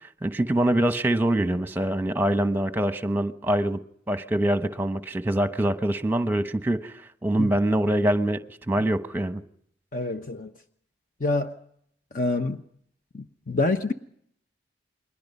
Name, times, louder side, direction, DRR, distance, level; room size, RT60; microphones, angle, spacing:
voice 1, 0.2-3.8 4.1-6.9 7.2-9.4, right 1 dB, 10° right, 1.0 m, -24 dB
voice 2, 9.9-10.5 11.2-11.5 12.1-12.6 13.1-13.9, left 2 dB, 45° left, 1.0 m, -26 dB
29.0 x 21.5 x 5.5 m
head